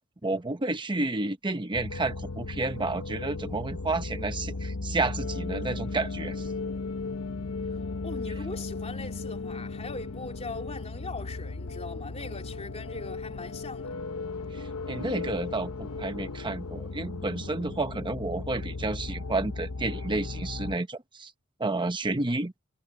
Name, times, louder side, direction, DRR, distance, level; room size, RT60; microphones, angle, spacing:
voice 1, 0.2-6.5 14.9-21.3 21.6-22.5, right 2 dB, 20° right, 1.0 m, -31 dB
sound 1, 1.7-20.8, left 3 dB, 90° left, 0.9 m, -36 dB
voice 2, 7.7-13.9, left 3 dB, 30° left, 3.3 m, -41 dB
head